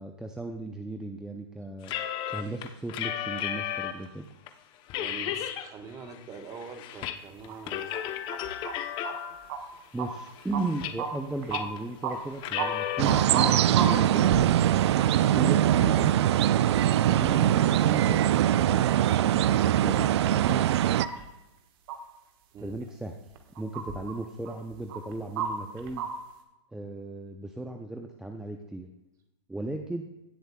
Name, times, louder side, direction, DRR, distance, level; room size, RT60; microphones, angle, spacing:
voice 1, 0.0-1.9 2.3-4.2 9.9-14.5 15.3-16.2 17.1-18.2 18.6-18.9 22.6-23.1 23.6-26.1 26.7-28.9 29.5-30.0, right 2 dB, 5° right, 3 dB, 0.5 m, -36 dB
sound 1, 1.8-4.1 4.5-4.6 4.9-5.7 6.0-7.2 7.4-9.5 10.0-11.2 11.5-11.8 12.3-13.0, left 11 dB, 30° left, 0.8 m, -34 dB
voice 2, 5.0-8.0 22.5-22.8, right 4 dB, 20° right, 6 dB, 1.3 m, -44 dB
sound 2, 7.5-8.0 8.3-8.8 9.0-9.6 10.0-10.7 11.0-11.1 11.4-11.6 12.0-12.2 12.6-12.7 13.0-14.7 15.0-15.1 16.0-16.6 16.9-18.0 18.3-19.0 19.4-19.5 20.1-21.3 21.9-22.0 22.8-22.9 23.3-24.2 24.5-26.1, right 7 dB, 50° right, 1.4 m, -34 dB
sound 3, 13.0-21.0, right 11 dB, 65° right, 0.4 m, -22 dB
17.0 x 7.8 x 2.3 m, 0.98 s
hypercardioid pair, 135°, 15 cm